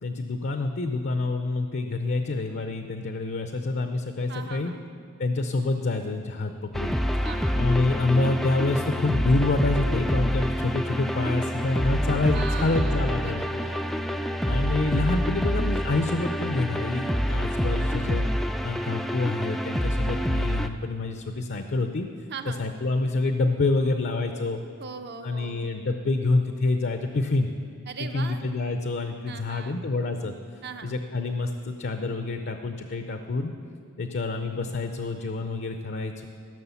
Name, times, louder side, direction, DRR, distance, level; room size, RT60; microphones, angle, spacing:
voice 1, 0.0-4.7 5.2-6.9 7.5-13.4 14.4-18.3 18.6-22.1 22.6-24.6 25.2-27.5 28.1-30.4 30.8-33.5 34.0-36.3, left 2 dB, 50° left, 7 dB, 0.5 m, -27 dB
voice 2, 4.3-4.9 7.2-7.6 12.3-14.0 22.3-22.6 24.8-25.7 27.9-28.4 29.3-29.8 30.6-31.0, right 5 dB, 50° right, 7 dB, 0.7 m, -39 dB
sound 1, 6.7-20.7, equal, ahead, 0.3 m, -27 dB
15.5 x 6.3 x 7.0 m, 2.3 s
head